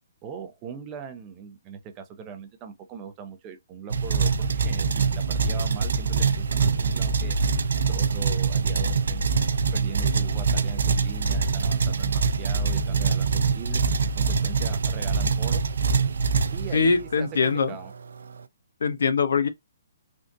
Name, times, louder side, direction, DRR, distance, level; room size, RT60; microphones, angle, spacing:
voice 1, 0.2-7.4 7.9-9.4 9.7-15.6 16.5-17.9, right 6 dB, 20° right, 0.5 m, -40 dB
sound 1, 3.9-17.1, right 5 dB, 80° right, 0.4 m, -24 dB
voice 2, 16.7-17.7 18.8-19.5, left 5 dB, 85° left, 0.6 m, -22 dB
3.4 x 2.5 x 2.5 m
hypercardioid pair, 165°, 0 cm